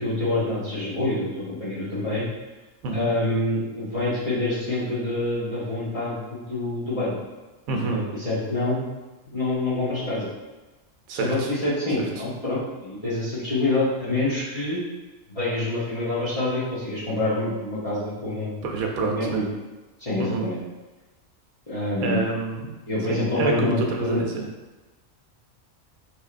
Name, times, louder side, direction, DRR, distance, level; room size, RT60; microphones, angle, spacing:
voice 1, 0.0-2.2 2.9-7.1 7.8-8.8 9.3-10.3 11.1-14.8 15.3-18.7 19.0-19.4 20.0-20.6 21.7-22.2 22.9-24.2, left 2 dB, 30° left, -10 dB, 0.9 m, -26 dB
voice 2, 7.7-8.0 11.1-11.5 12.0-12.1 18.6-19.5 20.2-20.5 22.0-22.7 23.1-24.5, right 3 dB, 80° right, 1 dB, 1.0 m, -27 dB
4.7 x 2.8 x 2.4 m, 1.2 s
omnidirectional pair, 1.5 m